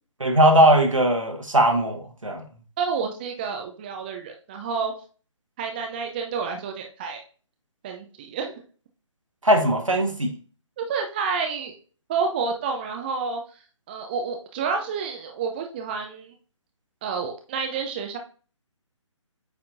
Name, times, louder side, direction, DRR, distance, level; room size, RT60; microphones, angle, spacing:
voice 1, 0.2-2.4 9.4-10.3, right 1 dB, 80° right, 1.6 m, -19 dB
voice 2, 2.8-4.9 5.6-7.2 7.8-8.6 10.8-11.8 12.1-13.4 13.9-16.3 17.0-18.2, right 5 dB, 20° right, 0.5 m, -29 dB
8.6 x 4.3 x 2.6 m
figure-of-eight pair, 140°, 16 cm